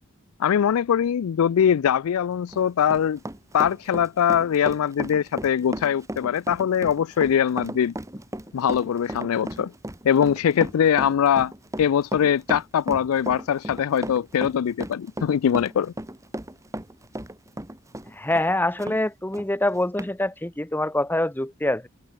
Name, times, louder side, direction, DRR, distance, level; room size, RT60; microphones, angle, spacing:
voice 1, 0.4-3.2 3.5-7.9 8.5-9.7 10.0-11.5 11.8-15.9, left 8 dB, 75° left, 0.4 m, -22 dB
Run, 2.3-19.0 19.3-19.5 20.0-20.1, right 1 dB, 15° right, 1.7 m, -35 dB
voice 2, 18.1-21.9, left 1 dB, 10° left, 0.9 m, -25 dB
head